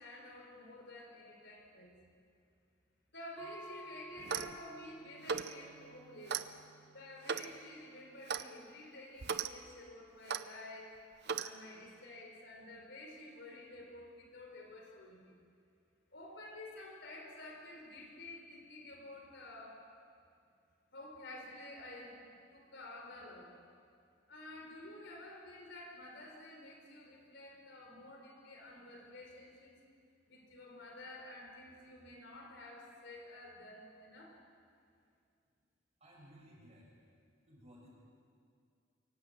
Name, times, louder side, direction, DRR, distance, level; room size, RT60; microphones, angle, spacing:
voice 1, 0.0-2.0 3.1-6.4 6.9-10.9 11.4-15.3 16.1-19.8 20.9-23.6 24.3-29.7 30.3-34.4, left 1 dB, 60° left, 1 dB, 4.1 m, -51 dB
sound 1, 3.4-8.5, right 1 dB, 10° left, 3.7 m, -55 dB
Clock, 4.2-4.6 5.2-5.5 6.3-6.5 7.3-7.5 8.3-8.5 9.2-9.5 10.3-10.4 11.3-11.5, right 6 dB, 55° right, 0.7 m, -37 dB
voice 2, 36.0-36.9 37.5-37.9, equal, 35° right, -3 dB, 6.9 m, -58 dB
24.0 x 18.5 x 7.7 m, 2.3 s
head